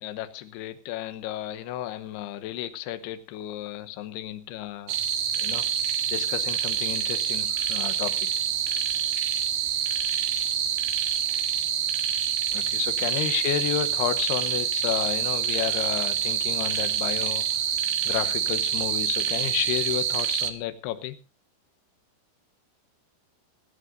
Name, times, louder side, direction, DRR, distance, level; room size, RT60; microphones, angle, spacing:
voice 1, 0.0-5.0 5.4-5.7 6.1-8.1 12.5-17.4 18.1-21.2, left 12 dB, 75° left, 11 dB, 2.5 m, -32 dB
sound 1, 4.9-20.5, right 9 dB, 70° right, 3.0 m, -27 dB
25.5 x 11.0 x 2.6 m, 0.30 s
omnidirectional pair, 5.7 m